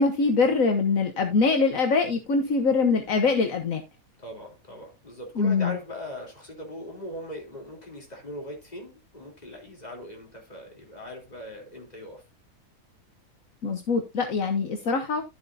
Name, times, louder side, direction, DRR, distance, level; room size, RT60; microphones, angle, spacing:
voice 1, 0.0-3.8 5.4-5.7 13.6-15.2, left 4 dB, 70° left, 1.5 m, -23 dB
voice 2, 4.2-12.2, left 1 dB, 25° left, 3.7 m, -40 dB
12.0 x 7.6 x 2.7 m
omnidirectional pair, 1.5 m